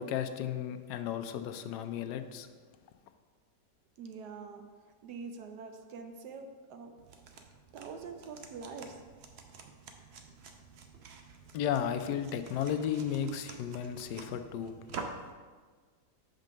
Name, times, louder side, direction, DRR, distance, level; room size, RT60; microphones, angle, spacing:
voice 1, 0.0-2.5 11.5-14.7, left 9 dB, 80° left, 8 dB, 1.1 m, -34 dB
voice 2, 4.0-4.6 5.0-6.9 7.7-9.0, right 5 dB, 75° right, 6 dB, 1.2 m, -44 dB
Book Sounds - Flip, 7.0-15.3, right 4 dB, 60° right, 0.7 m, -48 dB
5.3 x 5.2 x 6.3 m, 1.5 s
omnidirectional pair, 1.8 m